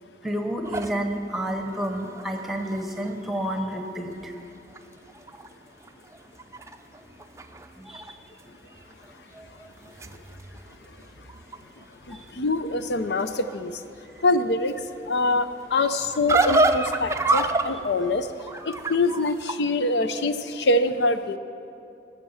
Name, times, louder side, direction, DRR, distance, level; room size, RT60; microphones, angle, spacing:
voice 1, 0.2-4.3 7.8-8.1 9.3-9.9, right 1 dB, ahead, 3 dB, 1.0 m, -30 dB
sound 1, 0.6-3.9 4.3-4.4 4.7-5.5 5.8-8.1 8.4-8.9 9.6-19.5, right 2 dB, 15° right, 0.4 m, -29 dB
voice 2, 12.1-13.8 14.2-14.8 15.1-18.3 18.6-21.4, left 2 dB, 80° left, 10 dB, 0.6 m, -24 dB
19.0 x 7.3 x 7.2 m, 2.8 s
head